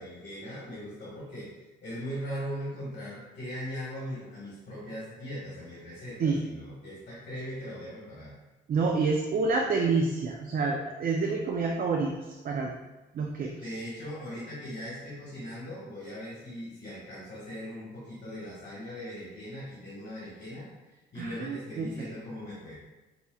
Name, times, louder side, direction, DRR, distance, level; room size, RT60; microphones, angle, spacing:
voice 1, 0.0-1.5 1.8-8.3 13.6-22.7, equal, 40° left, -7 dB, 1.4 m, -39 dB
voice 2, 8.7-12.7 13.1-13.5 21.2-21.9, right 4 dB, 45° right, 1 dB, 0.4 m, -28 dB
5.3 x 2.8 x 2.3 m, 1.1 s
cardioid pair, 90°, 20 cm